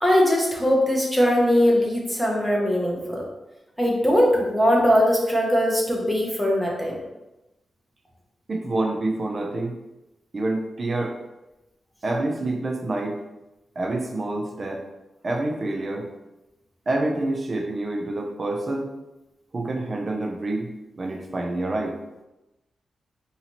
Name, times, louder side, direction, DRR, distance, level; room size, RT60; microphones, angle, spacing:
voice 1, 0.0-3.2 3.8-7.0, equal, ahead, -3 dB, 0.9 m, -20 dB
voice 2, 8.5-9.8 10.3-11.2 12.0-13.2 13.8-14.9 15.2-16.1 16.9-18.9 19.5-22.0, right 2 dB, 35° right, 1 dB, 0.6 m, -27 dB
4.8 x 2.8 x 3.0 m, 0.99 s
wide cardioid pair, 120°, 0 cm